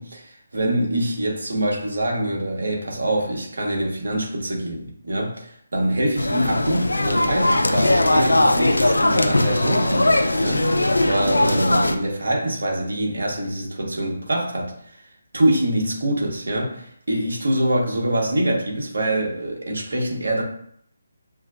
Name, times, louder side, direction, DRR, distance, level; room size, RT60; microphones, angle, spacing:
voice 1, 0.0-14.7 15.3-20.4, right 1 dB, 60° right, 0 dB, 1.3 m, -24 dB
sound 1, 6.2-12.0, left 1 dB, 75° left, 0.5 m, -19 dB
7.0 x 2.8 x 2.5 m, 0.67 s
figure-of-eight pair, 150°, 0 cm